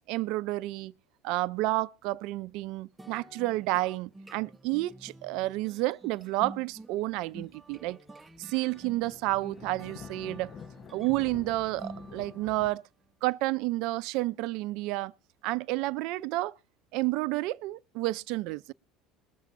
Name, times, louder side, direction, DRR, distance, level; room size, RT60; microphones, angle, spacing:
voice 1, 0.1-0.9 1.2-8.0 8.4-10.5 10.9-12.8 13.2-15.1 15.4-16.5 16.9-18.7, right 19 dB, 65° right, 0.5 m, -30 dB
sound 1, 3.0-12.6, right 1 dB, 15° right, 0.9 m, -49 dB
sound 2, 6.5-12.7, left 8 dB, 50° left, 0.8 m, -49 dB
21.5 x 7.4 x 3.7 m
hypercardioid pair, 70°, 0 cm